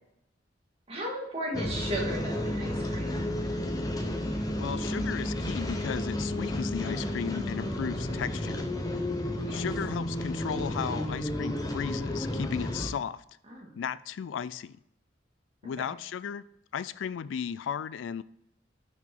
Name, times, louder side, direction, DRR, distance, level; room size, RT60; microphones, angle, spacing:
voice 1, 0.9-3.3 9.5-9.6 13.5-13.8 15.8-15.9, right 1 dB, 30° right, 2.0 m, -36 dB
sound 1, 1.5-12.9, left 1 dB, 20° left, 0.8 m, -32 dB
voice 2, 4.6-8.7 9.5-13.2 13.8-14.8 15.6-16.4 16.7-18.2, left 7 dB, 80° left, 0.3 m, -35 dB
6.0 x 5.8 x 4.4 m
head